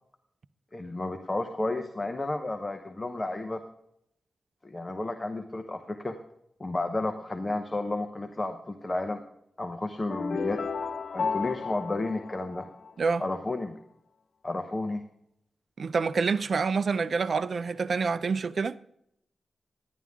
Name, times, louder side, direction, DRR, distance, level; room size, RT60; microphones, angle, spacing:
voice 1, 0.7-3.6 4.6-6.2 6.6-9.2 9.6-10.6 11.1-12.7 13.2-13.8 14.4-15.0, left 2 dB, 25° left, 1.0 m, -32 dB
sound 1, 10.1-13.2, left 5 dB, 60° left, 0.8 m, -33 dB
voice 2, 15.8-18.8, right 5 dB, 60° right, 0.5 m, -27 dB
11.5 x 10.5 x 3.6 m
cardioid pair, 85°, 0 cm